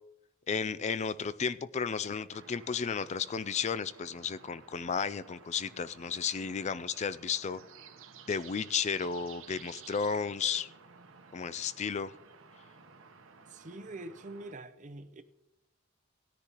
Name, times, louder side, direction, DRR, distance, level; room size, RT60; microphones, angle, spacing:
voice 1, 0.5-7.6 8.3-10.7 11.3-12.1, left 6 dB, 35° left, 0.4 m, -33 dB
sound 1, 2.3-14.5, right 6 dB, 75° right, 1.0 m, -54 dB
voice 2, 13.5-15.2, right 2 dB, 35° right, 0.6 m, -44 dB
18.0 x 10.0 x 3.0 m
head